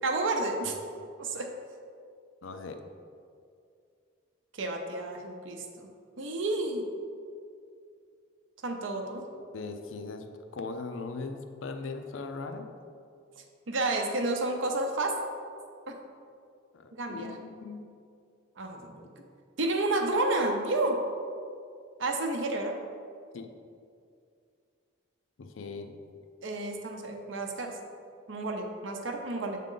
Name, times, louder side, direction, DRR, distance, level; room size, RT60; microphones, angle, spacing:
voice 1, 0.0-0.8 1.2-1.5 4.5-5.9 6.2-6.8 8.6-9.3 13.7-15.1 15.9-16.0 16.9-17.4 18.6-19.1 19.6-21.0 22.0-22.7 26.4-27.8 28.3-29.6, right 2 dB, 70° right, 3 dB, 0.6 m, -30 dB
voice 2, 2.4-2.8 9.5-10.2 10.5-12.6 16.7-17.9 23.3-23.5 25.4-25.9, left 4 dB, 75° left, 6 dB, 0.5 m, -39 dB
7.3 x 3.7 x 3.8 m, 2.3 s
head